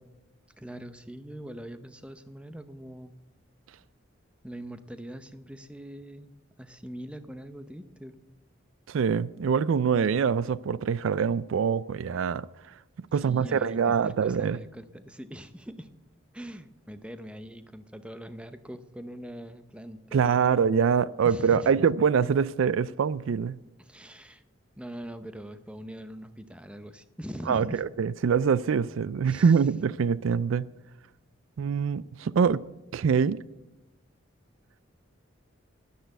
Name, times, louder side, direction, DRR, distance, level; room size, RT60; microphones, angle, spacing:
voice 1, 0.6-3.1 4.4-8.2 13.1-15.9 16.3-20.6 21.2-21.9 23.8-24.4 24.8-27.8 29.2-29.7, equal, 5° right, 0.7 m, -42 dB
voice 2, 8.9-12.5 13.1-14.6 20.1-23.6 27.5-30.7 31.6-32.7 32.9-33.4, right 6 dB, 80° right, 0.4 m, -24 dB
11.0 x 10.0 x 8.1 m
head